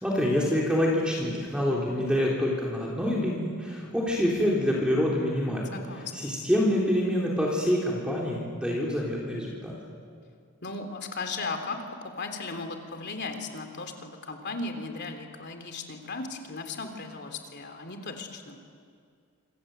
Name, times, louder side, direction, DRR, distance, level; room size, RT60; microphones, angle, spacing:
voice 1, 0.0-5.8 6.1-9.7, equal, 5° right, -4 dB, 3.7 m, -26 dB
voice 2, 5.7-6.3 10.6-11.8 12.2-18.6, left 3 dB, 50° left, 6 dB, 3.3 m, -36 dB
27.0 x 26.0 x 8.0 m, 2.2 s
head